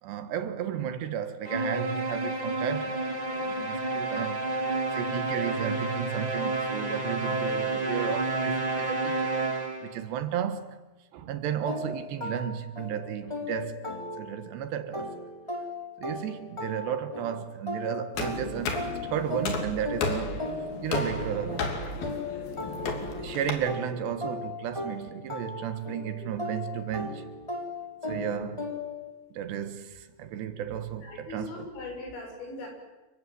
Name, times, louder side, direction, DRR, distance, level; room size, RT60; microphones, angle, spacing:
voice 1, 0.0-3.0 3.4-4.4 4.9-9.4 9.8-10.8 11.1-15.1 16.0-18.8 19.1-20.4 20.8-21.7 23.0-27.3 28.0-28.7 29.3-31.7, right 9 dB, 75° right, 3.5 m, -33 dB
sound 1, 1.4-10.0, right 2 dB, 55° right, 0.4 m, -30 dB
sound 2, 11.7-14.5 14.9-23.3 23.7-29.1, left 2 dB, 5° left, 2.7 m, -37 dB
sound 3, 18.2-23.5, left 3 dB, 60° left, 4.5 m, -33 dB
voice 2, 26.2-26.6 28.0-28.5 31.0-32.7, left 2 dB, 85° left, 9.5 m, -41 dB
28.5 x 24.0 x 7.8 m
omnidirectional pair, 5.1 m